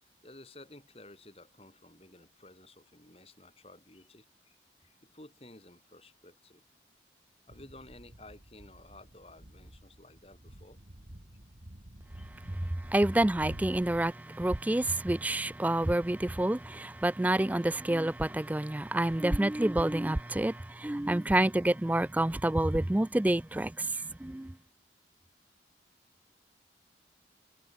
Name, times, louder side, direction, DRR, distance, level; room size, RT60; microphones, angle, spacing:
voice 1, 0.0-6.6 7.5-10.8 12.1-12.3 12.6-12.8 20.9-21.1, left 2 dB, 35° left, 4.4 m, -54 dB
sound 1, 7.5-14.1, right 1 dB, 50° right, 2.3 m, -49 dB
voice 2, 12.9-23.9 24.2-24.5, right 1 dB, 10° right, 0.3 m, -28 dB
head